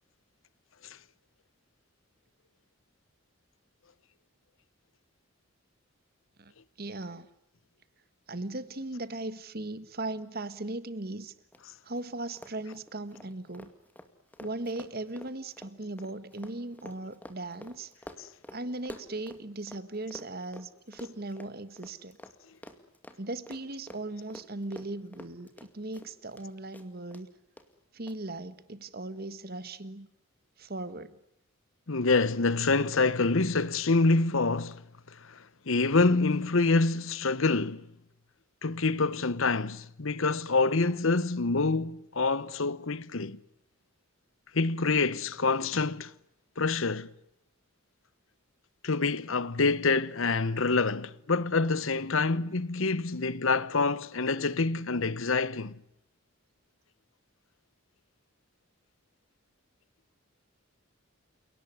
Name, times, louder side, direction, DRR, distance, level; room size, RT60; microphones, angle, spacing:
voice 1, 6.8-7.3 8.3-11.3 11.8-13.7 14.4-17.9 18.5-22.2 23.2-27.3 27.9-30.1 30.6-31.2, right 2 dB, 45° right, 1.5 m, -38 dB
Run, 11.5-11.6 11.9-12.0 12.3-19.8 20.1-26.5 26.7-27.2 27.6-27.7 28.1-28.2, left 1 dB, 10° left, 2.2 m, -48 dB
voice 2, 31.9-34.8 35.2-37.9 38.6-43.4 44.5-46.1 46.6-47.1 48.8-55.8, left 3 dB, 70° left, 1.0 m, -26 dB
29.5 x 18.0 x 9.6 m
head